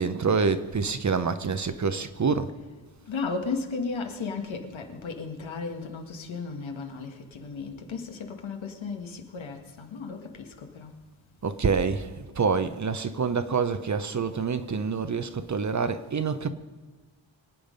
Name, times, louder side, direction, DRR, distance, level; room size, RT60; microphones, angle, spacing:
voice 1, 0.0-2.5 11.4-16.5, right 5 dB, 35° right, 0.9 m, -27 dB
voice 2, 3.1-10.9, left 4 dB, 75° left, 2.0 m, -35 dB
24.5 x 8.7 x 5.3 m
wide cardioid pair, 115°, 47 cm